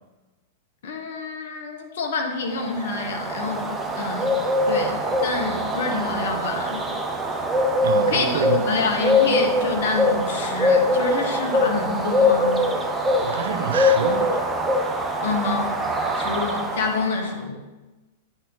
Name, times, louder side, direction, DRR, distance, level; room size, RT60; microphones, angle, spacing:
voice 1, 0.8-4.3 4.6-6.9 8.1-12.7 15.2-15.7 16.1-17.6, left 4 dB, 60° left, 1.2 m, -27 dB
Bird, 2.6-17.3, left 1 dB, 10° right, 0.8 m, -23 dB
voice 2, 7.8-8.7 13.2-14.5, right 7 dB, 70° right, 0.5 m, -27 dB
9.0 x 4.2 x 3.7 m
figure-of-eight pair, 100°, 0 cm